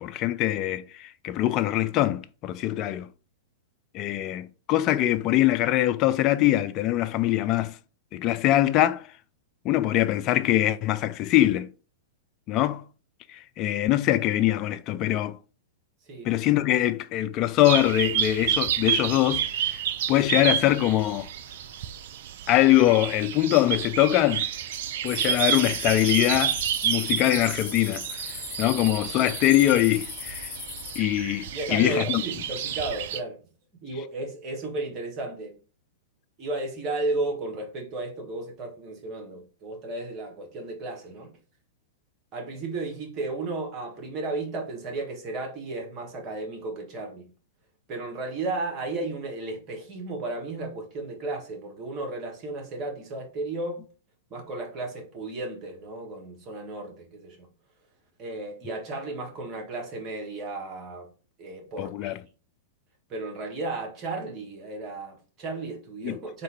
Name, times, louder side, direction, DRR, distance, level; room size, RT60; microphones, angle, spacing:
voice 1, 0.0-3.1 3.9-7.8 8.1-9.1 9.6-11.7 12.5-12.8 13.3-15.4 16.2-19.8 20.1-21.3 22.5-24.5 25.0-30.5 31.0-32.2 61.8-62.2 66.0-66.2, left 14 dB, 35° left, 0.3 m, -23 dB
sound 1, 17.6-33.2, right 9 dB, 55° right, 0.4 m, -30 dB
sound 2, 25.1-31.0, left 5 dB, 20° left, 0.9 m, -38 dB
voice 2, 31.5-33.4 33.8-35.6 36.4-41.3 42.3-47.3 47.9-53.9 54.3-57.5 58.2-61.1 61.4-62.1 63.1-66.4, right 2 dB, 30° right, 1.4 m, -34 dB
3.7 x 2.5 x 4.3 m
figure-of-eight pair, 100°, 0 cm